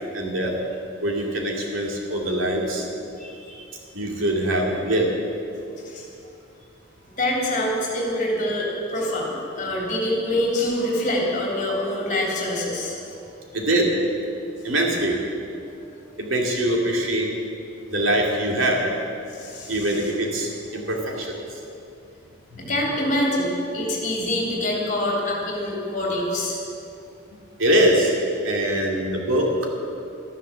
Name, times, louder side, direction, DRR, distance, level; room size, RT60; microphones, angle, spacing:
voice 1, 0.1-0.5 1.0-2.9 3.9-5.1 13.5-13.9 14.6-15.2 16.2-17.3 17.9-19.0 19.7-21.6 22.5-22.8 27.6-28.2 28.4-29.7, right 1 dB, 85° right, -1 dB, 2.6 m, -23 dB
voice 2, 3.2-3.6 5.9-6.0 7.2-13.0 15.6-15.7 16.1-16.2 19.3-19.8 22.7-26.6, left 1 dB, 40° left, -2 dB, 3.3 m, -25 dB
13.0 x 11.5 x 7.1 m, 2.6 s
head